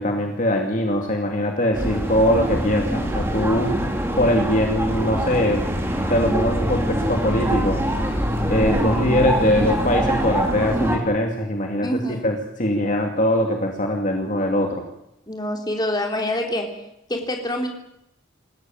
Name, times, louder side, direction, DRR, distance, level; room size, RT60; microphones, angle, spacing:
voice 1, 0.0-3.7 4.2-5.6 6.1-7.8 8.5-11.9 12.2-14.8, equal, 40° left, 2 dB, 2.5 m, -21 dB
sound 1, 1.7-11.0, equal, 15° right, 3.5 m, -24 dB
voice 2, 11.8-12.3 15.3-16.7 17.1-17.7, left 1 dB, 20° left, 2 dB, 3.6 m, -26 dB
27.0 x 15.0 x 9.0 m, 0.82 s
head